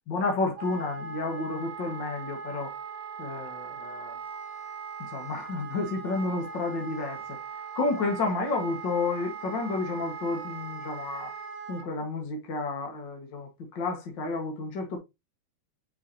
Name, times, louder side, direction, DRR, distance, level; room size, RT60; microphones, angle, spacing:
voice 1, 0.1-2.7 3.2-4.1 5.0-7.4 7.7-11.3 11.7-15.0, left 3 dB, 45° left, 1.5 m, -31 dB
Wind instrument woodwind instrument, 0.6-11.9, right 6 dB, 75° right, 3.7 m, -40 dB
9.4 x 4.9 x 2.9 m
omnidirectional pair, 4.5 m